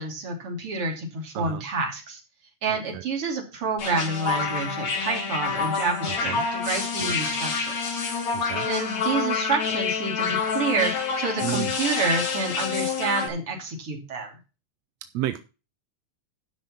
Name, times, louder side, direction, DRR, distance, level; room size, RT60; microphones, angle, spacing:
voice 1, 0.0-2.2 2.6-8.1 8.7-10.9 11.2-14.4, right 3 dB, 45° right, 2 dB, 3.6 m, -28 dB
sound 1, 3.8-13.3, left 5 dB, 60° left, 3.4 m, -27 dB
voice 2, 6.0-6.5 8.4-8.7 11.4-11.7 15.1-15.4, right 14 dB, 75° right, 10 dB, 1.6 m, -30 dB
12.0 x 5.6 x 5.9 m, 0.31 s
omnidirectional pair, 3.7 m